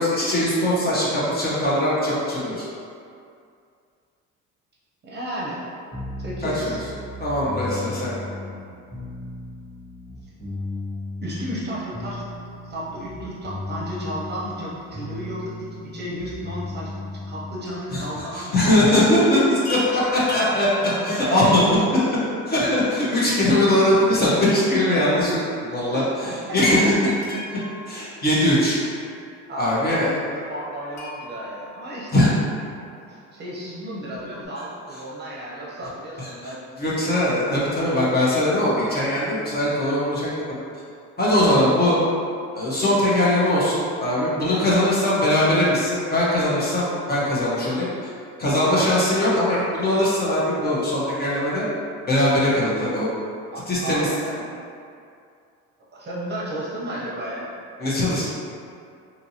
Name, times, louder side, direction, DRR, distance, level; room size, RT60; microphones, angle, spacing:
voice 1, 0.0-2.7 6.4-6.8 7.2-8.3 17.9-20.7 21.0-21.7 22.5-27.1 27.9-28.8 29.6-30.1 32.1-32.3 36.4-36.5 36.8-40.5 41.2-42.0 42.5-47.9 48.4-51.6 52.0-53.1 53.7-54.1 57.8-58.2, left 1 dB, 30° left, -7 dB, 0.8 m, -21 dB
voice 2, 5.0-5.6 6.2-6.8 11.2-12.2 12.6-17.0 17.3-19.2 20.9-22.1 25.9-27.0 29.5-32.3 33.0-36.6 53.5-54.4 55.9-57.5, equal, 35° right, -6 dB, 0.7 m, -33 dB
sound 1, 5.9-17.8, left 2 dB, 10° left, 1.1 m, -35 dB
Chime, 19.6-22.1 23.5-25.0 25.3-25.4 26.6-29.3 30.9-32.6 34.1-34.2 34.4-34.5, right 1 dB, 55° left, 1.0 m, -37 dB
2.7 x 2.6 x 2.8 m, 2.4 s
cardioid pair, 95°, 32 cm